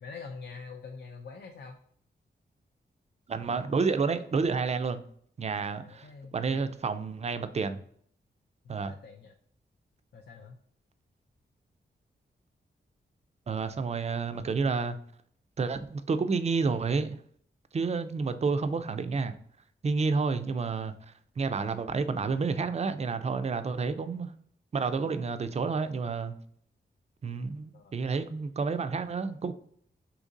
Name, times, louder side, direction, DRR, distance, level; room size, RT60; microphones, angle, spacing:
voice 1, 0.0-1.8 5.7-6.4 8.6-9.3 10.1-10.6 18.8-18.9 27.7-27.9, left 4 dB, 60° left, 0.4 m, -45 dB
voice 2, 3.3-5.0 5.4-7.8 8.7-8.9 13.5-15.0 15.6-17.2 17.7-19.3 19.8-24.3 24.7-26.3 27.2-29.5, right 4 dB, 35° right, 0.4 m, -30 dB
2.8 x 2.6 x 3.7 m
cardioid pair, 50°, 20 cm